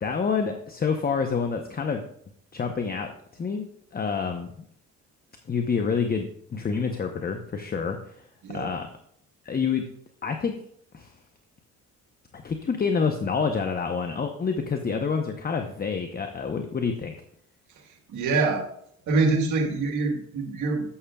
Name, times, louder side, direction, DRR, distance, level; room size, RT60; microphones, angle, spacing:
voice 1, 0.0-2.0 2.5-3.7 3.9-4.5 5.5-8.1 8.5-8.9 9.4-9.8 10.2-10.5 10.9-11.1 12.3-17.1, left 5 dB, 30° left, 5 dB, 0.8 m, -27 dB
voice 2, 8.4-8.7 17.8-18.7 19.1-20.9, right 3 dB, 75° right, 2 dB, 1.5 m, -25 dB
11.5 x 8.0 x 2.3 m, 0.66 s
cardioid pair, 90°, 30 cm